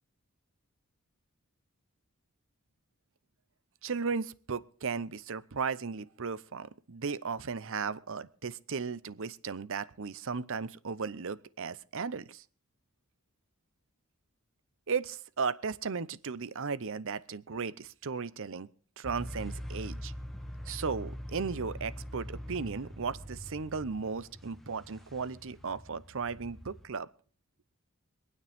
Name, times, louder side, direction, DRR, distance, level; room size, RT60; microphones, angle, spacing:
voice 1, 3.8-12.4 14.9-18.7 19.0-20.1 20.7-27.1, right 5 dB, 65° right, 17 dB, 0.8 m, -36 dB
sound 1, 19.0-26.9, equal, ahead, 1.1 m, -43 dB
25.0 x 9.7 x 3.6 m, 0.43 s
head